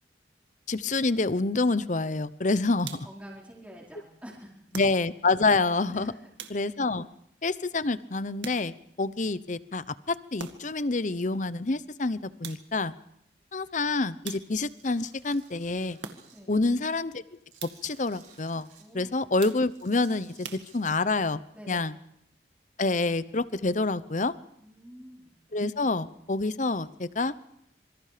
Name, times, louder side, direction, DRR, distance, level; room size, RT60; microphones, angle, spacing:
voice 1, 0.7-3.1 4.7-6.1 6.5-7.1 7.4-12.9 13.5-16.0 16.5-17.2 17.6-18.7 18.9-21.4 21.7-21.9 22.8-24.3 25.5-27.3, left 3 dB, 45° left, 15 dB, 0.8 m, -27 dB
sound 1, 2.8-3.3 4.7-5.4 6.4-7.0 8.4-9.0 10.4-10.9 12.4-12.9 14.2-14.8 16.0-16.6 17.6-18.0 19.4-19.9 20.4-21.2, right 6 dB, 85° right, 2.1 m, -44 dB
voice 2, 3.0-4.6 5.8-6.3 16.3-16.6 18.8-19.1 21.5-21.8 24.6-25.3, equal, 10° right, -4 dB, 4.6 m, -47 dB
Tools, 14.7-16.4 16.9-18.8 19.6-20.8, right 7 dB, 45° right, 5.9 m, -57 dB
26.5 x 24.0 x 5.1 m, 0.73 s
head